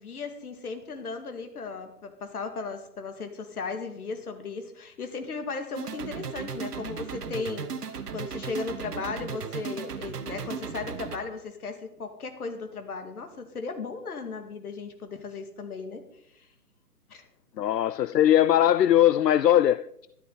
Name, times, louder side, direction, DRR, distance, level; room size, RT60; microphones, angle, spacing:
voice 1, 0.0-16.1 16.4-16.5 17.1-17.2, left 4 dB, 65° left, 2.2 m, -36 dB
sound 1, 5.8-11.2, right 6 dB, 75° right, 1.4 m, -36 dB
voice 2, 17.6-20.1, left 11 dB, 85° left, 0.6 m, -20 dB
13.0 x 12.5 x 4.1 m
hypercardioid pair, 155°, 48 cm